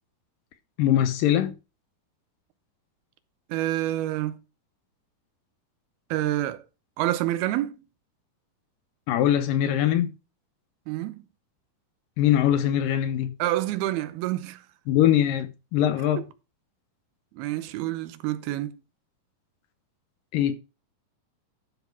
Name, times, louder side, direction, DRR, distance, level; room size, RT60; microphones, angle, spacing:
voice 1, 0.8-1.6 9.1-10.1 12.2-13.4 14.9-16.2 20.3-20.5, left 11 dB, 75° left, 2.3 m, -22 dB
voice 2, 3.5-4.4 6.1-6.6 7.0-7.8 10.9-11.3 13.4-14.6 16.2-16.3 17.3-18.8, right 14 dB, 85° right, 2.8 m, -28 dB
12.0 x 5.8 x 4.6 m
omnidirectional pair, 4.4 m